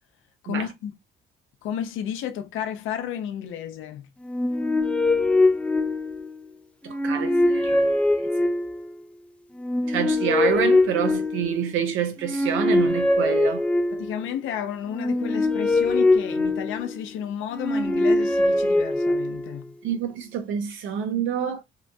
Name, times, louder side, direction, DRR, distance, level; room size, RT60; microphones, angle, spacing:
voice 1, 0.4-0.9 1.6-4.1 13.9-19.7, left 9 dB, 85° left, 0.5 m, -32 dB
sound 1, 4.3-6.4 6.9-8.9 9.6-11.7 12.2-14.2 14.9-17.0 17.5-19.5, left 2 dB, 5° left, 0.3 m, -22 dB
voice 2, 6.8-7.8 8.4-8.5 9.9-13.6 19.8-21.6, right 8 dB, 80° right, 0.4 m, -27 dB
2.8 x 2.2 x 2.6 m
cardioid pair, 90°, 20 cm